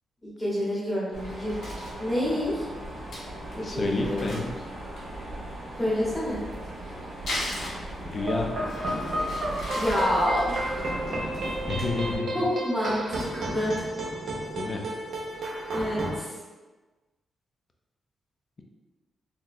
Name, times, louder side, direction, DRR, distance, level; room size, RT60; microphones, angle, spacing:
voice 1, 0.2-1.6 2.0-2.7 3.6-4.5 5.8-6.4 9.7-10.5 12.3-13.0 13.4-13.8 15.7-16.3, left 1 dB, 5° left, -8 dB, 1.0 m, -27 dB
Mechanisms, 1.1-12.2, right 1 dB, 80° right, 1.1 m, -39 dB
Crumpling crinkling, 1.2-2.0 2.5-2.6 2.9-3.0 3.1-3.2 3.5-3.6 4.0-5.2 6.4-8.3 8.7-11.9 12.2-12.5 12.8-14.1 14.5-14.6 14.9-15.4, left 1 dB, 80° left, 1.3 m, -39 dB
voice 2, 3.6-4.5 8.0-8.6 11.7-12.4 14.5-14.8, left 3 dB, 30° left, 2 dB, 0.4 m, -29 dB
sound 1, 8.2-16.2, right 1 dB, 50° right, 0.5 m, -32 dB
3.7 x 2.2 x 2.6 m, 1.2 s
wide cardioid pair, 145°, 0 cm